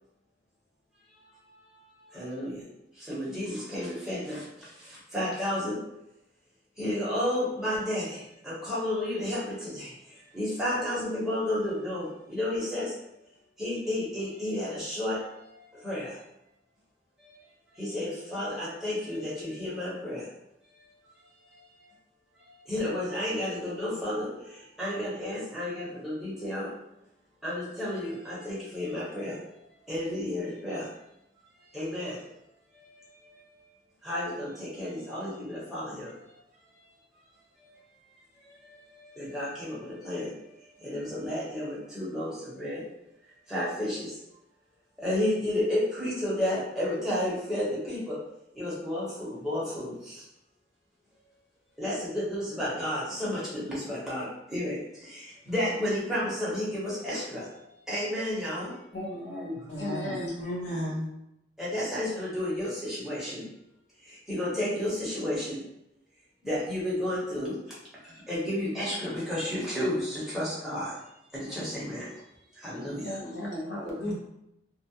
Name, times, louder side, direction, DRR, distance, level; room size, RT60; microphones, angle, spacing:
voice 1, 2.1-2.6 3.0-5.7 6.8-9.9 10.3-12.9 13.6-15.2 15.8-16.1 17.8-20.3 22.5-26.7 27.4-29.4 29.9-30.9 31.7-32.2 34.0-36.1 38.6-40.3 40.8-42.8 43.5-44.1 45.0-48.2 48.6-50.2 51.8-57.5 57.9-58.7 61.6-63.4 64.1-65.6 66.4-67.6 68.0-70.9 71.3-72.1 72.6-73.2 73.5-73.6, left 1 dB, ahead, -9 dB, 0.8 m, -32 dB
voice 2, 58.9-60.3 73.0-74.1, left 1 dB, 70° left, -3 dB, 0.7 m, -35 dB
voice 3, 59.7-61.1 74.0-74.1, equal, 35° left, -11 dB, 0.7 m, -34 dB
2.3 x 2.1 x 2.7 m, 0.83 s
head